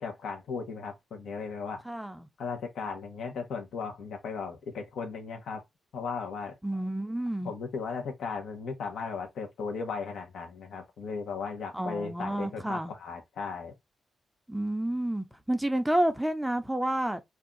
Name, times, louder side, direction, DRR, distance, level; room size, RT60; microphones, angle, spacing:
voice 1, 0.0-1.8 2.4-5.6 5.9-6.6 7.4-13.7, left 5 dB, 85° left, 0.9 m, -36 dB
voice 2, 1.8-2.3 6.6-7.5 11.7-12.9 14.5-17.2, right 1 dB, 5° right, 0.4 m, -30 dB
2.6 x 2.3 x 3.7 m
cardioid pair, 110°, 0 cm